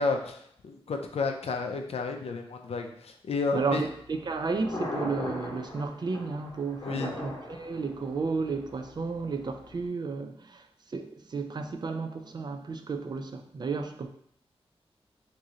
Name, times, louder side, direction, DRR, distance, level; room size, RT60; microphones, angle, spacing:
voice 1, 0.0-3.9 6.8-7.1, left 4 dB, 75° left, 4 dB, 0.5 m, -31 dB
voice 2, 3.5-10.6 10.9-14.1, right 4 dB, 45° right, 6 dB, 0.3 m, -32 dB
Thunder, 3.9-9.9, left 1 dB, 40° left, 0.9 m, -40 dB
3.0 x 2.6 x 3.7 m, 0.67 s
wide cardioid pair, 145°, 10 cm